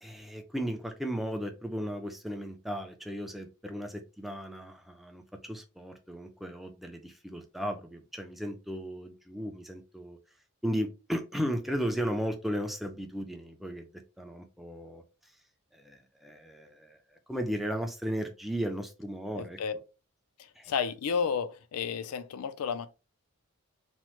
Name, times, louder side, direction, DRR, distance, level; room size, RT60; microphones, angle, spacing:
voice 1, 0.0-10.2 10.6-13.9 14.2-15.0 15.7-19.6 20.6-20.7, equal, ahead, 0.4 m, -35 dB
voice 2, 19.4-19.7 20.4-22.9, left 6 dB, 85° left, 0.4 m, -32 dB
3.0 x 2.0 x 2.9 m
head